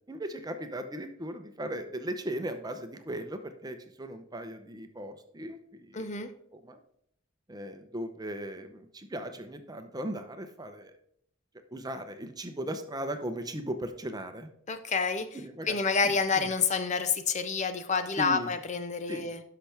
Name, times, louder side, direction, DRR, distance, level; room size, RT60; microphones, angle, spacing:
voice 1, 0.1-6.2 6.5-6.8 7.5-10.9 11.7-14.5 15.3-16.5 18.2-18.5 19.1-19.3, right 1 dB, 20° right, 7 dB, 0.8 m, -38 dB
voice 2, 5.9-6.3 14.7-15.4 15.7-19.4, left 5 dB, 35° left, 10 dB, 0.6 m, -28 dB
12.0 x 5.8 x 3.4 m, 0.70 s
head